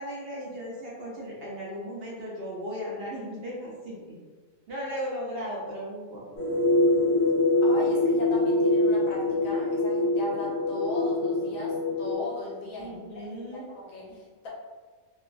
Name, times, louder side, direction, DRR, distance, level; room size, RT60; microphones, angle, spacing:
voice 1, 0.0-4.2 4.7-6.2 12.8-13.7 14.1-14.2, equal, 60° right, -5 dB, 0.7 m, -36 dB
sound 1, 6.4-12.1, left 2 dB, 30° left, 0.8 m, -24 dB
voice 2, 7.6-13.3 13.7-14.5, left 1 dB, 80° left, -4 dB, 1.2 m, -38 dB
3.0 x 2.3 x 2.3 m, 1.4 s
omnidirectional pair, 1.4 m